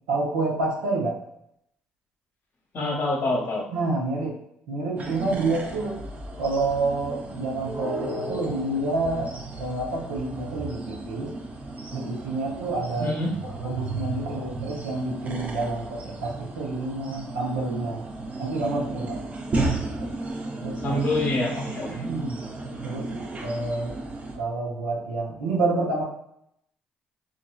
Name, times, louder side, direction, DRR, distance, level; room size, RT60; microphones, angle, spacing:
voice 1, 0.1-1.2 3.7-4.4 4.7-6.0 6.4-11.4 11.9-13.1 13.5-18.1 18.4-19.2 19.6-19.7 20.0-20.1 20.6-21.1 21.9-22.4 22.8-24.0 24.3-26.0, right 2 dB, 85° right, -3 dB, 0.7 m, -28 dB
voice 2, 2.7-3.6 13.0-13.3 19.7-19.8 20.8-22.0, left 2 dB, 55° left, 0 dB, 0.9 m, -26 dB
sound 1, 5.0-24.4, right 2 dB, 35° right, 0.6 m, -34 dB
3.0 x 2.4 x 2.3 m, 0.75 s
hypercardioid pair, 55°, 4 cm